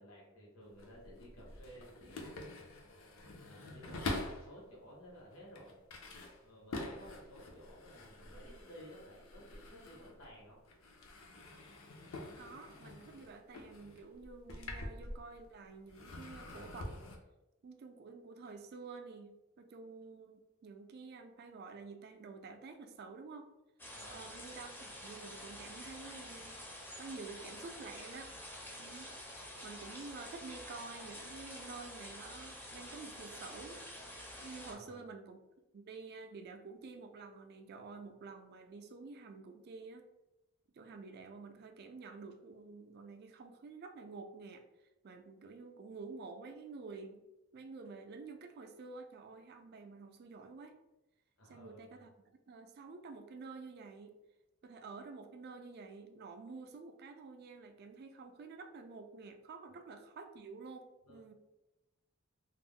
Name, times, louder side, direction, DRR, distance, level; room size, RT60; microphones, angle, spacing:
voice 1, 0.0-2.4 3.4-5.8 6.4-10.6 23.9-24.3 34.6-35.0 51.4-52.0 59.7-59.8 61.0-61.3, equal, 90° left, -4 dB, 1.0 m, -55 dB
sound 1, 0.6-4.6 5.2-10.4 10.7-15.5 15.9-17.2, left 2 dB, 70° left, 0.5 m, -46 dB
voice 2, 12.4-16.9 17.6-23.5 24.1-26.6 27.0-28.3 28.8-29.1 29.6-33.8 34.4-35.4 35.7-40.1 40.7-44.6 45.0-47.2 47.5-50.8 51.4-54.2 54.6-61.3, right 4 dB, 50° right, 6 dB, 0.3 m, -50 dB
sound 2, 23.8-34.7, equal, 10° left, 0.4 m, -48 dB
2.4 x 2.0 x 3.5 m, 0.98 s
head